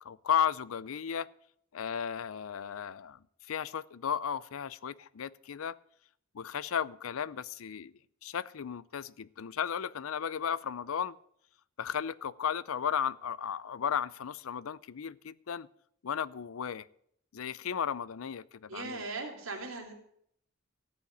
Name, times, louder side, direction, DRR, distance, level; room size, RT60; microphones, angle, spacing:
voice 1, 0.0-1.3 1.7-5.8 6.3-7.9 8.2-11.2 11.8-15.7 16.0-16.9 17.3-19.0, left 8 dB, 85° left, 20 dB, 0.5 m, -34 dB
voice 2, 18.7-19.9, right 3 dB, 80° right, 1 dB, 3.2 m, -39 dB
14.0 x 5.7 x 9.5 m, 0.69 s
head